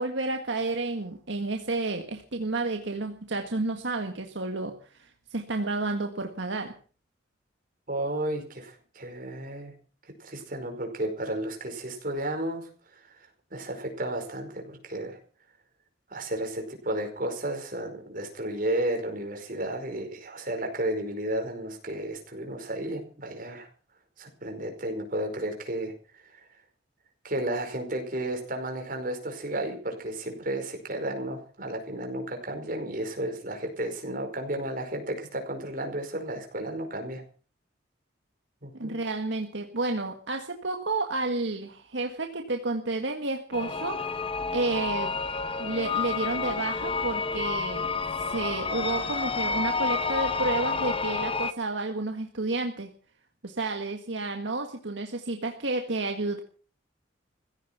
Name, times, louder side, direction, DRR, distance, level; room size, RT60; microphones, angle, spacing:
voice 1, 0.0-6.7 38.7-44.0 44.5-45.2 45.6-47.8 48.3-52.9 53.4-56.4, right 2 dB, 75° right, 4 dB, 1.7 m, -31 dB
voice 2, 7.9-9.7 10.2-15.2 16.1-23.7 24.2-26.4 27.2-37.2 38.6-39.0, right 1 dB, 45° right, 4 dB, 5.0 m, -33 dB
sound 1, 43.5-51.5, left 4 dB, 30° left, 0.9 m, -30 dB
16.0 x 14.5 x 5.9 m, 0.40 s
head